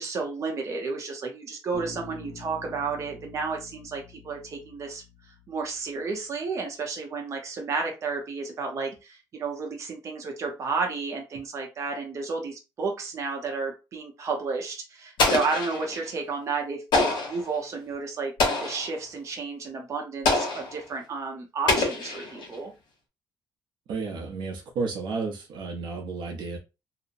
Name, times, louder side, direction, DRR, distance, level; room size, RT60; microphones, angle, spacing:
voice 1, 0.0-5.0 5.5-18.3 18.6-22.7, right 4 dB, 40° right, 0.7 m, -32 dB
Bass guitar, 1.7-5.8, left 2 dB, 65° right, 1.1 m, -46 dB
Explosion, 15.2-16.1 16.9-17.5 18.4-18.9 20.3-20.8 21.7-22.6, left 3 dB, 70° left, 1.1 m, -25 dB
voice 2, 23.9-26.6, right 4 dB, 85° right, 0.7 m, -32 dB
2.8 x 2.1 x 2.5 m
cardioid pair, 160°, 8 cm